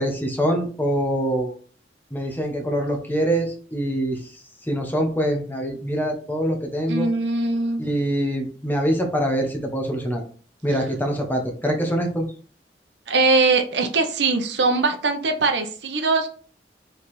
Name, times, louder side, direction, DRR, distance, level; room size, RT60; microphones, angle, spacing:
voice 1, 0.0-1.5 2.1-4.2 4.6-7.1 7.8-10.2 10.6-12.3, equal, 10° left, 1 dB, 1.3 m, -24 dB
voice 2, 6.9-7.8 13.1-16.3, right 3 dB, 75° right, 6 dB, 0.9 m, -21 dB
4.9 x 4.0 x 5.0 m, 0.43 s
head